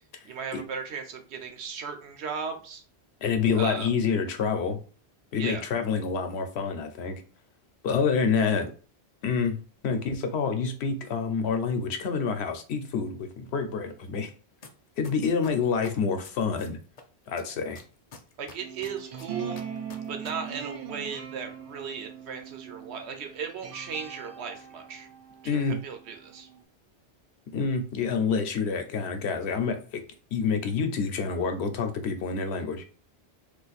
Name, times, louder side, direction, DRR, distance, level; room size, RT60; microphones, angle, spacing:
voice 1, 0.3-2.8 3.5-3.9 5.4-5.6 18.4-19.6 20.1-25.1 25.4-26.5, right 6 dB, 85° right, 0.9 m, -36 dB
voice 2, 3.2-4.8 5.3-7.2 7.8-8.7 9.2-9.6 9.8-14.3 15.0-16.8 17.3-17.8 25.4-25.8 27.5-30.0 30.3-32.8, left 5 dB, 80° left, 0.9 m, -27 dB
sound 1, 14.6-14.7 15.0-17.0 17.4-20.3 20.5-20.6, left 5 dB, 50° left, 0.5 m, -46 dB
sound 2, 18.6-26.6, right 7 dB, 55° right, 0.3 m, -41 dB
2.5 x 2.4 x 4.0 m
omnidirectional pair, 1.1 m